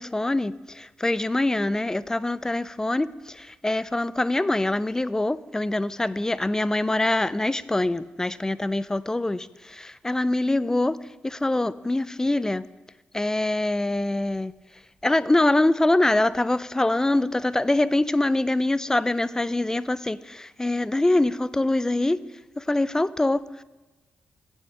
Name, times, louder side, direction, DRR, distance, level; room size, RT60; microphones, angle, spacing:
voice 1, 0.0-12.7 13.1-22.2 22.6-23.6, left 2 dB, 15° left, 18 dB, 0.3 m, -24 dB
8.0 x 5.9 x 6.5 m, 1.2 s
cardioid pair, 80°, 4 cm